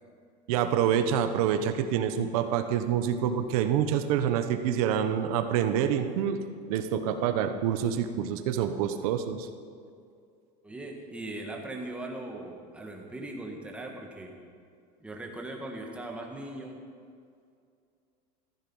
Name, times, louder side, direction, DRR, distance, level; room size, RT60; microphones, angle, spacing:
voice 1, 0.5-6.4 6.7-9.5, right 9 dB, 65° right, 8 dB, 1.1 m, -27 dB
voice 2, 10.6-14.3 15.0-16.8, right 2 dB, 5° right, 0 dB, 1.6 m, -39 dB
15.0 x 14.0 x 5.5 m, 2.4 s
cardioid pair, 170°, 20 cm